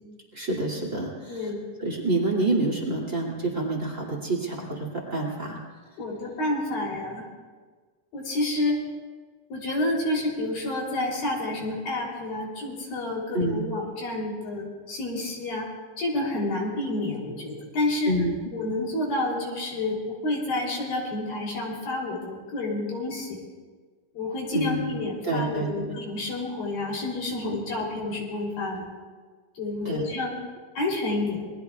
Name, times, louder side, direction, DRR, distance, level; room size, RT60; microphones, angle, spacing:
voice 1, 0.3-1.5 1.8-5.6 13.3-13.6 18.1-18.3 18.6-18.7 24.5-25.0 25.2-25.9 29.8-30.0, right 2 dB, 25° right, 0 dB, 2.0 m, -27 dB
voice 2, 1.3-1.6 6.0-7.2 8.1-8.8 9.5-15.7 16.0-18.1 18.5-23.4 24.1-28.9 29.5-30.3 30.7-31.5, left 2 dB, 60° left, -2 dB, 4.9 m, -29 dB
27.5 x 21.0 x 2.3 m, 1.5 s
omnidirectional pair, 4.6 m